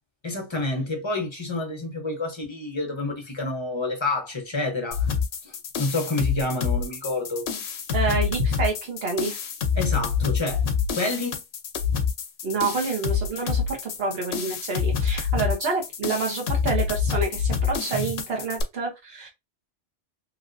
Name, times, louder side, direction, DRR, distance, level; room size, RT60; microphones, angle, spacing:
voice 1, 0.2-5.1 5.4-7.5 9.8-10.6 10.9-11.4, left 2 dB, 30° left, 0.8 m, -28 dB
sound 1, 4.9-18.6, left 6 dB, 70° left, 0.9 m, -27 dB
voice 2, 7.9-9.4 12.4-19.3, right 4 dB, 65° right, 1.3 m, -28 dB
3.1 x 2.8 x 2.5 m
omnidirectional pair, 1.1 m